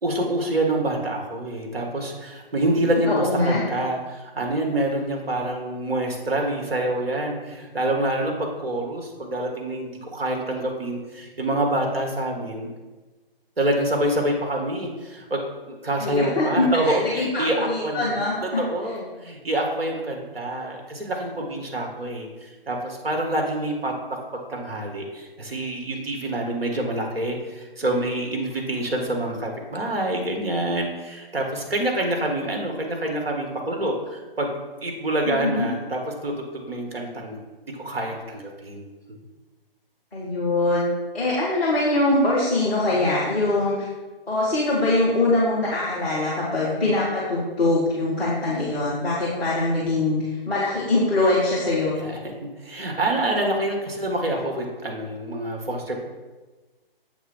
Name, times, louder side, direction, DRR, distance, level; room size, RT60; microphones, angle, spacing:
voice 1, 0.0-12.7 13.6-15.4 15.6-18.1 18.4-24.2 24.5-37.4 37.7-39.2 52.0-52.2 52.6-55.9, right 1 dB, 75° right, 1 dB, 1.7 m, -26 dB
voice 2, 3.1-3.6 16.0-18.6 35.3-35.7 40.1-40.8 41.1-43.7 44.3-50.2 50.5-52.0, left 2 dB, 5° left, -13 dB, 0.4 m, -23 dB
7.1 x 3.6 x 5.6 m, 1.2 s
figure-of-eight pair, 140°, 30 cm